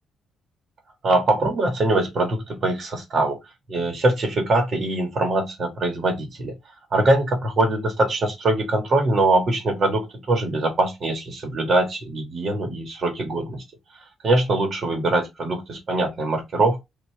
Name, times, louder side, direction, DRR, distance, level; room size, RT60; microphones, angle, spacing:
voice 1, 1.0-3.4 3.7-6.5 6.9-13.6 14.2-16.8, right 2 dB, 50° right, 1.4 m, -22 dB
3.1 x 2.7 x 4.4 m
cardioid pair, 90°, 0 cm